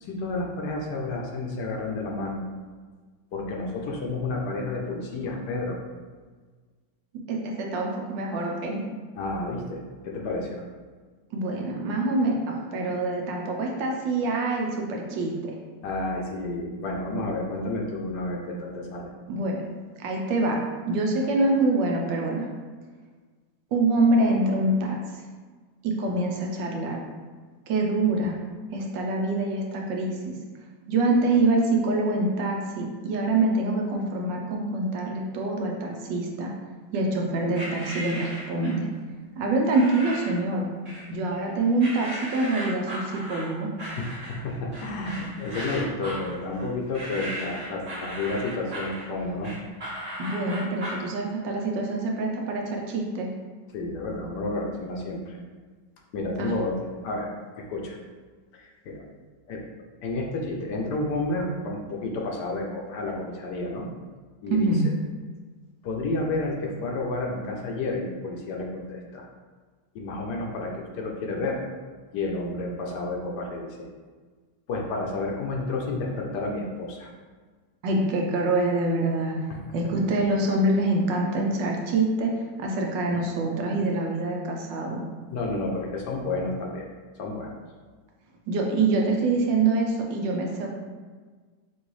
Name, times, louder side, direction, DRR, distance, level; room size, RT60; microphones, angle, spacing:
voice 1, 0.0-2.4 3.3-5.8 9.2-10.6 15.8-19.1 43.8-44.0 44.4-49.5 53.7-55.4 56.1-58.0 58.5-59.0 59.5-59.6 60.0-63.8 64.4-64.7 65.8-69.3 69.9-71.6 72.1-73.9 74.7-77.1 85.3-86.8 87.2-87.5, left 2 dB, 70° left, 0 dB, 1.2 m, -31 dB
voice 2, 7.3-8.8 11.3-15.5 19.3-19.6 20.0-20.6 20.8-22.5 23.7-25.0 25.8-27.0 27.7-28.4 28.7-30.3 30.9-36.5 36.9-38.9 39.4-40.7 41.1-43.7 50.2-53.3 56.4-56.5 64.5-64.8 77.8-79.5 79.7-82.3 82.6-85.0 88.5-90.7, right 2 dB, 80° right, 0 dB, 1.4 m, -25 dB
sound 1, 37.5-38.9 39.7-40.4 40.9-41.4 41.8-51.1, equal, 35° right, 0.6 m, -36 dB
6.1 x 2.6 x 3.1 m, 1.5 s
omnidirectional pair, 2.0 m